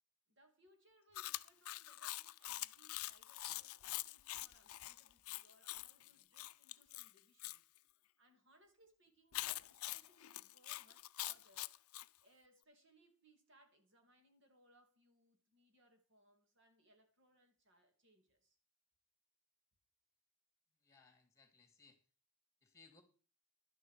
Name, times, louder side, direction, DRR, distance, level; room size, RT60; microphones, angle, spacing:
voice 1, 0.3-7.6 7.9-11.7 12.2-18.6, right 1 dB, 55° right, 2.6 m, -71 dB
Chewing mastication, 1.1-7.6 9.3-12.1, left 16 dB, 80° left, 0.5 m, -45 dB
voice 2, 20.8-22.0 22.6-23.0, left 4 dB, 15° left, 2.7 m, -66 dB
12.0 x 9.4 x 5.0 m
head